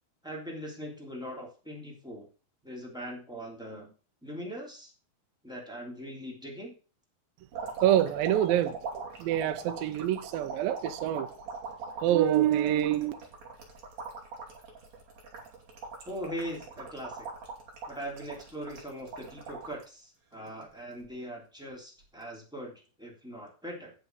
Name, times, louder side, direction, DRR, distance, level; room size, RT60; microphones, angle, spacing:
voice 1, 0.2-2.3 2.6-3.9 4.2-4.9 5.4-6.8 16.0-17.3 17.9-23.9, equal, ahead, 2.7 m, -41 dB
sound 1, 7.5-19.8 20.3-21.1 22.0-22.2, right 4 dB, 50° right, 3.6 m, -41 dB
voice 2, 7.8-8.8 9.2-11.3 12.0-13.1, right 12 dB, 85° right, 2.5 m, -26 dB
9.3 x 6.8 x 6.7 m
omnidirectional pair, 4.2 m